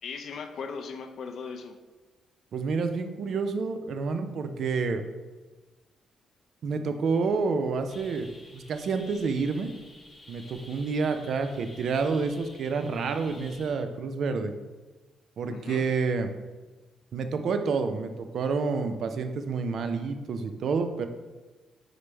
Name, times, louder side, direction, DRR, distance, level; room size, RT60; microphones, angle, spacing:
voice 1, 0.0-1.8 11.1-11.2 15.5-15.9, left 5 dB, 65° left, 5 dB, 0.4 m, -38 dB
voice 2, 2.5-5.0 6.6-8.3 8.5-9.7 10.3-14.5 15.4-16.3 17.1-21.1, right 4 dB, 65° right, 8 dB, 0.4 m, -29 dB
sound 1, 7.9-13.8, left 2 dB, 25° left, 0.8 m, -51 dB
4.9 x 2.0 x 4.4 m, 1.2 s
cardioid pair, 85°, 0 cm